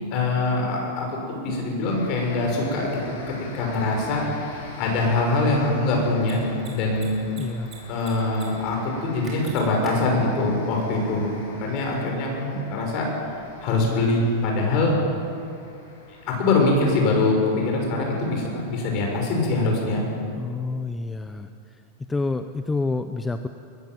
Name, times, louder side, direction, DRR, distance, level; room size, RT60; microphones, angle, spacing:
voice 1, 0.1-3.0 3.3-7.2 7.9-11.3 11.6-13.1 13.6-15.0 16.3-20.1, left 2 dB, 40° left, 0 dB, 6.2 m, -23 dB
sound 1, 1.8-19.4, left 3 dB, 65° left, 6.4 m, -44 dB
Mechanisms, 3.7-3.8 6.1-6.3 6.6-6.7 6.9-7.7 8.0-8.4 8.7-8.8 9.2-9.9, right 7 dB, 20° right, 4.9 m, -43 dB
voice 2, 7.4-7.7 20.4-21.5 22.1-23.5, left 3 dB, 10° left, 8 dB, 0.6 m, -28 dB
22.0 x 14.5 x 9.3 m, 2.5 s
supercardioid pair, 160°, 0 cm